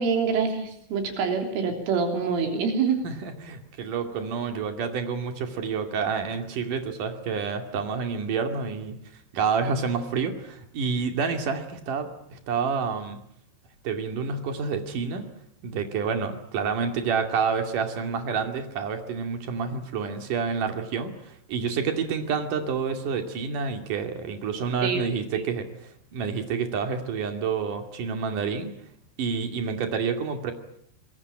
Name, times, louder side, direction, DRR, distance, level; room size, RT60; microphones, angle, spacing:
voice 1, 0.0-3.0 24.8-25.0 25.3-25.4, right 5 dB, 80° right, 4 dB, 5.8 m, -25 dB
voice 2, 3.0-9.0 9.3-13.2 13.8-15.2 15.6-28.7 29.2-30.5, right 5 dB, 50° right, 6 dB, 3.4 m, -28 dB
26.0 x 21.5 x 8.8 m, 0.72 s
omnidirectional pair, 5.6 m